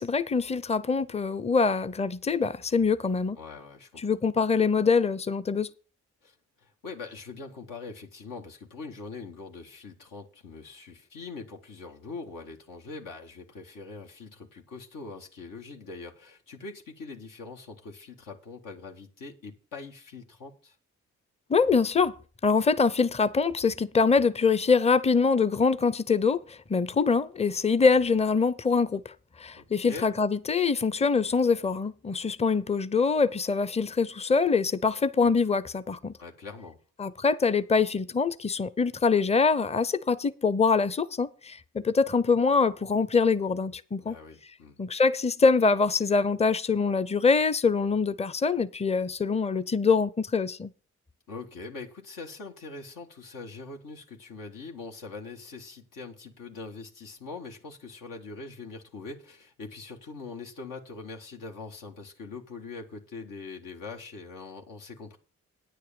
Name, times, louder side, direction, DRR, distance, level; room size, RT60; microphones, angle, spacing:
voice 1, 0.0-3.4 4.0-5.7 21.5-22.1 22.4-36.1 37.0-44.2 44.8-50.7, left 4 dB, 20° left, 0.6 m, -24 dB
voice 2, 3.4-4.0 6.2-20.7 29.5-30.1 36.2-36.8 44.0-44.8 51.3-65.2, left 4 dB, 80° left, 1.7 m, -42 dB
9.3 x 6.6 x 6.9 m
supercardioid pair, 55°, 32 cm